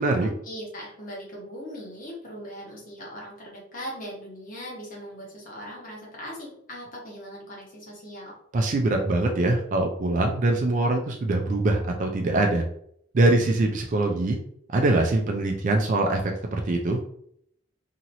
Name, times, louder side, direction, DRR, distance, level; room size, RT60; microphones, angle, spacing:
voice 1, 0.4-8.3, equal, 45° left, -3 dB, 1.2 m, -39 dB
voice 2, 8.5-12.6 13.1-14.4 14.7-16.2 16.5-17.0, right 2 dB, 40° right, 2 dB, 0.4 m, -23 dB
2.9 x 2.8 x 2.6 m, 0.69 s
head